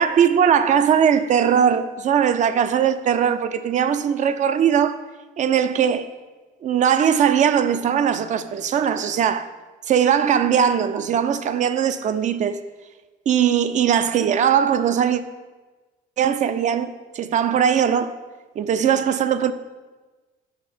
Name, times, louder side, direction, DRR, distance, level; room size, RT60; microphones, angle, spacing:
voice 1, 0.0-5.0 5.4-6.1 6.6-9.5 9.9-12.6 13.3-15.2 16.2-18.1 18.6-19.5, right 8 dB, 45° right, 0.4 m, -20 dB
5.8 x 4.2 x 6.0 m
cardioid pair, 110°, 17 cm